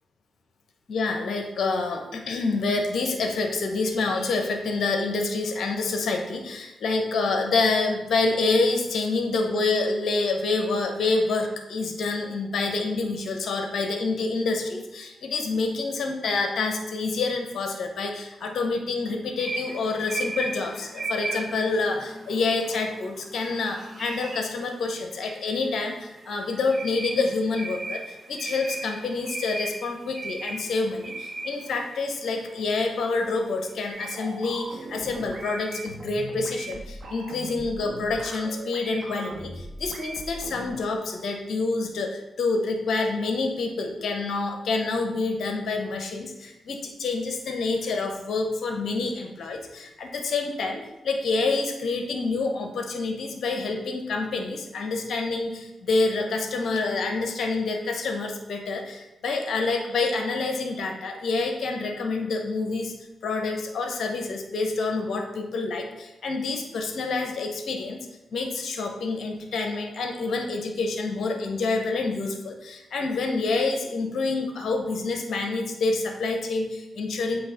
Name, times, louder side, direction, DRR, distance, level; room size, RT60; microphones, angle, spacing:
voice 1, 0.9-62.9 63.2-68.1 68.3-77.4, left 3 dB, 65° left, 4 dB, 1.0 m, -27 dB
sound 1, 19.4-35.9, right 2 dB, 35° right, 1.3 m, -38 dB
sound 2, 33.9-40.8, right 2 dB, 55° right, 1.5 m, -39 dB
7.9 x 2.9 x 5.5 m, 0.93 s
hypercardioid pair, 40°, 0 cm